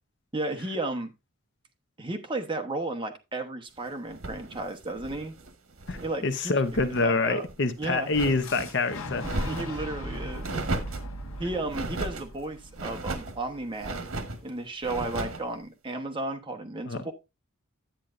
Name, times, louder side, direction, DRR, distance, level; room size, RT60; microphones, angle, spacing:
voice 1, 0.3-1.1 2.0-5.3 6.0-6.5 7.0-7.5 7.8-8.1 9.4-10.5 11.4-14.1 14.4-17.1, right 2 dB, 25° right, 1.1 m, -33 dB
sound 1, 4.1-6.2 6.5-7.0 7.4-8.7 9.2-9.8 10.4-11.1 11.7-12.3 12.7-13.4 13.8-14.4 14.8-15.5, right 2 dB, 80° right, 1.3 m, -35 dB
voice 2, 5.9-9.3 16.9-17.0, left 3 dB, 55° left, 0.7 m, -26 dB
Boom, 8.4-14.3, equal, 85° left, 1.3 m, -39 dB
10.0 x 9.0 x 2.5 m
head